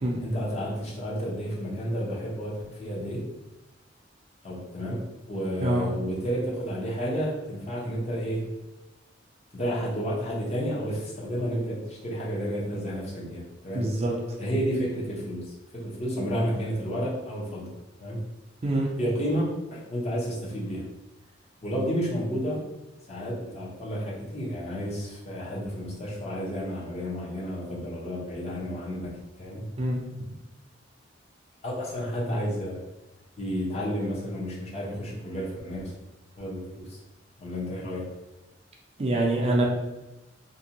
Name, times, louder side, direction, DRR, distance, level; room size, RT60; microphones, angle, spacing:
voice 1, 0.2-3.2 4.4-5.0 5.3-8.5 9.5-13.9 14.4-18.2 19.0-19.4 19.7-20.8 21.6-22.6 23.1-29.6 31.6-32.8 33.4-35.9 36.4-37.0 37.4-38.0, equal, 35° left, -4 dB, 0.7 m, -31 dB
voice 2, 13.7-14.1 18.6-18.9 29.8-30.0 39.0-39.6, right 1 dB, 35° right, -1 dB, 0.4 m, -25 dB
2.6 x 2.2 x 2.8 m, 1.0 s
head